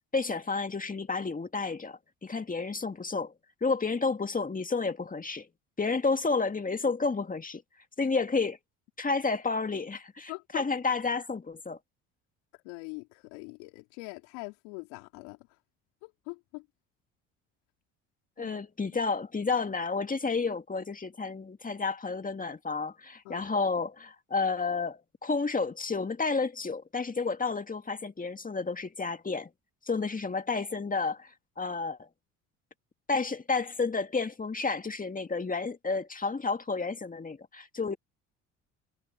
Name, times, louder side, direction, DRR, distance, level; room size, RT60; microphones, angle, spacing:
voice 1, 0.0-3.3 3.6-5.5 5.8-7.6 8.0-8.6 9.0-11.8 18.4-29.5 29.8-32.1 33.1-38.0, left 4 dB, 20° left, 2.2 m, -31 dB
voice 2, 10.3-10.7 12.5-15.6 16.0-16.7 18.4-18.6 18.9-19.0 23.2-23.5, left 29 dB, 75° left, 3.1 m, -43 dB
hypercardioid pair, 65°, 36 cm